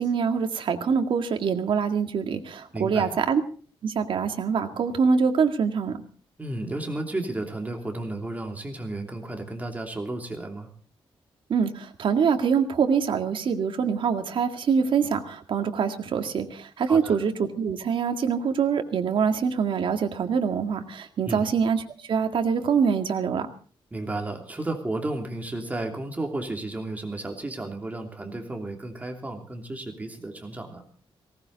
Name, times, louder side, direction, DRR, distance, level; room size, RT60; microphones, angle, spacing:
voice 1, 0.0-3.4 3.8-6.0 11.5-23.5, right 6 dB, 60° right, 6 dB, 2.0 m, -24 dB
voice 2, 2.7-3.2 6.4-10.7 16.9-17.2 21.2-21.5 23.9-30.8, right 2 dB, 15° right, 3 dB, 2.9 m, -33 dB
18.5 x 18.0 x 4.1 m, 0.42 s
wide cardioid pair, 140°, 10 cm